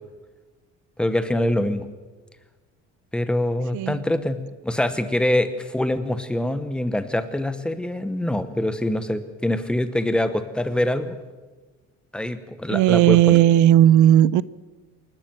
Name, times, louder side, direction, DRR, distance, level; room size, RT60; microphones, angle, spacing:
voice 1, 1.0-1.9 3.1-11.2 12.1-13.4, left 1 dB, 5° left, 0.9 m, -24 dB
voice 2, 12.7-14.4, right 12 dB, 85° right, 0.6 m, -15 dB
28.0 x 12.0 x 7.7 m
cardioid pair, 180°, 29 cm